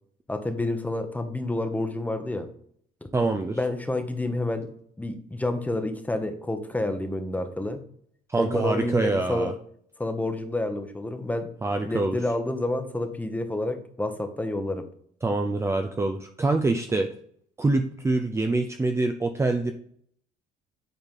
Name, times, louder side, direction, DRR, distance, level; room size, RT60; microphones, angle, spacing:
voice 1, 0.3-2.5 3.5-7.8 8.4-9.5 10.0-11.5 11.9-14.9, left 1 dB, 10° left, 7 dB, 1.0 m, -29 dB
voice 2, 3.1-3.6 8.3-9.5 11.6-12.2 15.2-17.1 17.6-19.7, right 2 dB, 15° right, 5 dB, 0.5 m, -25 dB
8.9 x 4.1 x 3.7 m, 0.62 s
cardioid pair, 110°, 17 cm